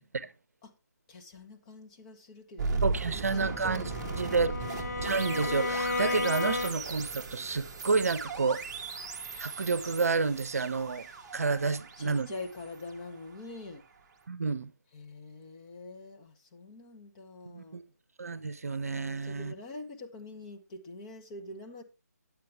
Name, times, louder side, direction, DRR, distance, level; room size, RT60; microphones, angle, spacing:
voice 1, 1.1-4.3 12.0-13.8 14.9-17.8 18.9-21.8, left 2 dB, 20° left, 1.2 m, -45 dB
sound 1, 2.6-13.6, right 4 dB, 20° right, 1.2 m, -37 dB
voice 2, 2.8-3.8 4.2-4.5 4.8-8.6 9.4-11.1 11.3-12.3 14.3-14.7 17.5-17.8 18.2-19.5, right 4 dB, 60° right, 0.8 m, -30 dB
Bowed string instrument, 3.2-7.1, left 3 dB, 70° left, 1.0 m, -34 dB
9.5 x 8.6 x 3.4 m
figure-of-eight pair, 155°, 9 cm